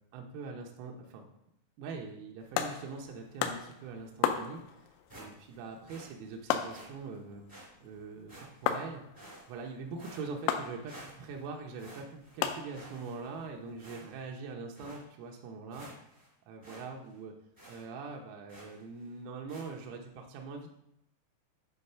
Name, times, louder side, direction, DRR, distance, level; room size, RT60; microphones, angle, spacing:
voice 1, 0.1-1.2 1.8-4.9 5.2-7.4 7.8-9.0 9.5-15.9 16.5-17.3 17.7-20.7, right 4 dB, 85° right, 1 dB, 3.6 m, -43 dB
sound 1, 2.4-13.9, left 9 dB, 80° left, 2.8 m, -38 dB
sound 2, 5.1-5.6 5.9-6.1 6.7-6.9 7.5-7.7 8.3-8.7 9.1-9.7 10.0-10.6 10.9-11.4 11.8-12.4 12.7-13.4 13.8-14.3 14.7-15.0 15.4-15.5 15.7-16.3 16.6-16.8 17.1-17.2 17.5-17.8 18.5-18.8 19.5-19.7, right 1 dB, 15° right, 0.7 m, -51 dB
9.9 x 4.0 x 5.5 m, 0.78 s
omnidirectional pair, 5.9 m